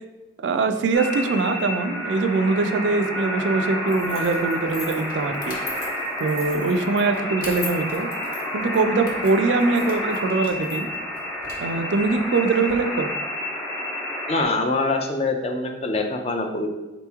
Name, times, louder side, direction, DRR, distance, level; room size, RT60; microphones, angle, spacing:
voice 1, 0.4-5.6 6.2-8.1 8.5-10.9 11.6-13.1, right 3 dB, 80° right, 8 dB, 0.4 m, -22 dB
sound 1, 0.9-14.4, equal, 15° left, 0.8 m, -30 dB
sound 2, 3.9-12.7, left 3 dB, 55° left, 0.9 m, -41 dB
voice 2, 14.3-16.7, left 3 dB, 35° left, 4 dB, 0.4 m, -24 dB
4.1 x 2.9 x 3.5 m, 1.1 s
head